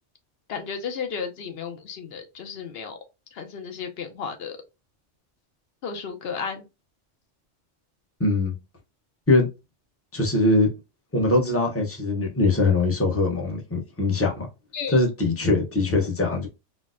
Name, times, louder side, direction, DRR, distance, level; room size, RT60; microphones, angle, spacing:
voice 1, 0.5-3.0 3.3-4.6 5.8-6.7 14.7-15.0, left 6 dB, 60° left, 0.8 m, -33 dB
voice 2, 8.2-8.5 9.3-9.5 10.1-10.7 11.1-14.5 14.9-16.5, left 2 dB, 15° left, 0.6 m, -22 dB
4.0 x 2.0 x 2.5 m
omnidirectional pair, 1.2 m